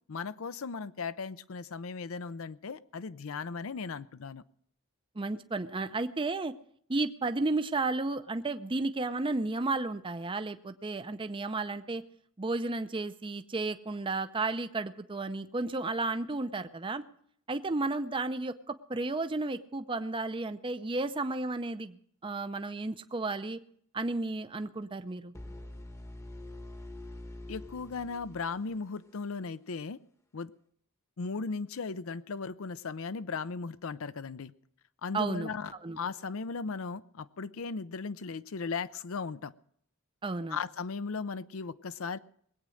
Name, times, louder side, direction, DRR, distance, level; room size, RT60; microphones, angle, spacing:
voice 1, 0.1-4.4 27.5-30.0 30.3-30.5 31.2-34.5 35.0-39.5 40.5-42.2, left 4 dB, 65° left, 14 dB, 0.5 m, -37 dB
voice 2, 5.2-6.5 6.9-12.0 12.4-17.0 17.5-23.6 23.9-25.3 35.1-35.5 35.8-36.0 40.2-40.6, right 3 dB, 25° right, 10 dB, 0.6 m, -33 dB
sound 1, 25.3-29.2, left 1 dB, 15° left, 1.0 m, -45 dB
20.5 x 8.8 x 6.4 m, 0.64 s
head